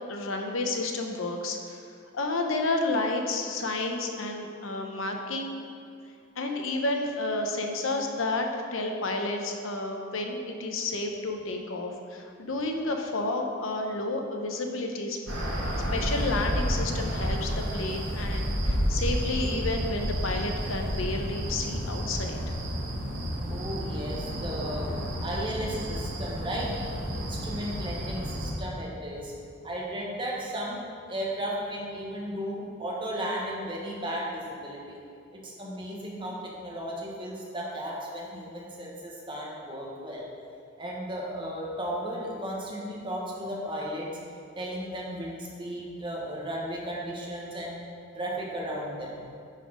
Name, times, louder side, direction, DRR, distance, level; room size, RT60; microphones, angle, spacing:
voice 1, 0.1-1.8 2.1-5.5 6.4-15.2 15.9-22.4, left 2 dB, 80° left, 3 dB, 0.8 m, -31 dB
sound 1, 15.3-28.5, equal, 65° right, 1.5 m, -31 dB
voice 2, 23.5-24.9 25.2-26.7 27.2-29.3 29.6-35.0 35.3-40.3 40.8-44.1 44.5-47.7 48.1-49.2, equal, 25° right, -3 dB, 1.3 m, -35 dB
10.0 x 4.2 x 5.0 m, 2.4 s
head